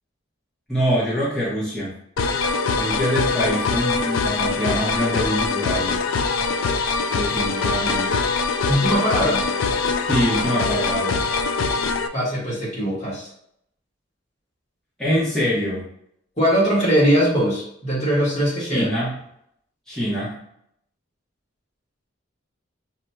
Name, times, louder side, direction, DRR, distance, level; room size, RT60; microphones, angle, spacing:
voice 1, 0.7-1.9 2.8-6.0 7.1-8.2 10.1-11.2 15.0-15.8 18.6-19.1 19.9-20.3, equal, 5° left, -10 dB, 1.0 m, -24 dB
sound 1, 2.2-12.1, left 4 dB, 80° left, 0.4 m, -23 dB
voice 2, 8.7-9.4 12.1-13.3 16.4-18.9, equal, 35° left, -6 dB, 1.5 m, -20 dB
5.9 x 2.8 x 2.2 m, 0.71 s
head